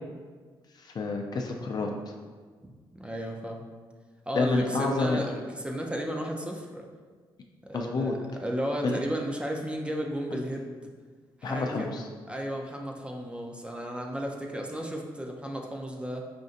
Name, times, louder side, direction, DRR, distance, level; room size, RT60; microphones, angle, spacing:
voice 1, 0.8-1.9 4.3-5.2 7.7-8.2 8.8-9.0 11.4-12.0, left 3 dB, 50° left, 2 dB, 0.4 m, -28 dB
voice 2, 2.6-3.6 4.3-6.9 7.6-10.9 11.4-11.9 12.3-16.2, equal, 10° right, 1 dB, 0.5 m, -34 dB
5.1 x 2.6 x 2.5 m, 1.5 s
cardioid pair, 80°, 9 cm